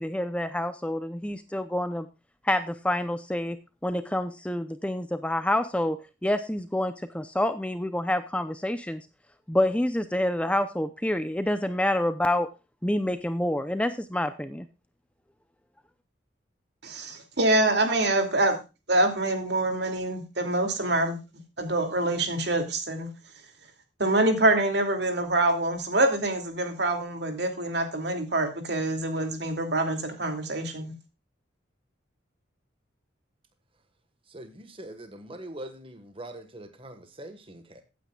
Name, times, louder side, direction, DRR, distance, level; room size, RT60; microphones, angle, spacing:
voice 1, 0.0-2.1 2.5-9.0 9.5-12.5 12.8-14.7, left 1 dB, 5° left, 11 dB, 0.6 m, -27 dB
voice 2, 16.8-18.6 18.9-21.2 21.6-23.1 24.0-30.9, right 2 dB, 60° right, 5 dB, 2.5 m, -25 dB
voice 3, 34.3-37.8, right 1 dB, 30° right, 8 dB, 1.5 m, -43 dB
16.0 x 9.3 x 2.3 m, 0.28 s
head